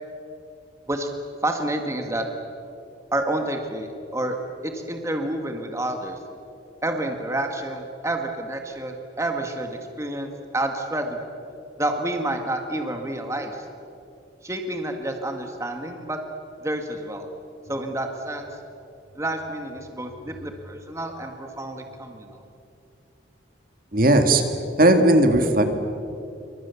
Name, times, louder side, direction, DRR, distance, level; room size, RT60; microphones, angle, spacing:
voice 1, 1.4-2.2 3.1-4.4 4.6-6.2 6.8-11.2 11.8-13.6 14.4-16.2 16.6-17.3 17.7-18.5 19.1-22.4, right 1 dB, 15° right, 4 dB, 1.8 m, -29 dB
voice 2, 23.9-24.4 24.8-25.7, right 1 dB, 45° right, 6 dB, 2.1 m, -16 dB
29.0 x 25.0 x 7.1 m, 2.7 s
head